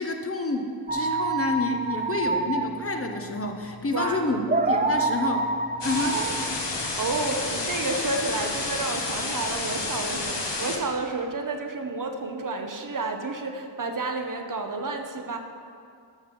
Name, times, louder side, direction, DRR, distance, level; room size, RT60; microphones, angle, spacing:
voice 1, 0.0-5.5 5.8-6.2, left 2 dB, 35° left, 4 dB, 0.8 m, -28 dB
sound 1, 0.9-7.5, right 2 dB, 20° right, 0.5 m, -27 dB
voice 2, 3.9-4.4 6.1-15.4, right 3 dB, 50° right, 5 dB, 0.9 m, -31 dB
sound 2, 5.8-10.8, left 3 dB, 75° left, 1.4 m, -30 dB
13.5 x 5.2 x 5.2 m, 2.4 s
wide cardioid pair, 100°, 42 cm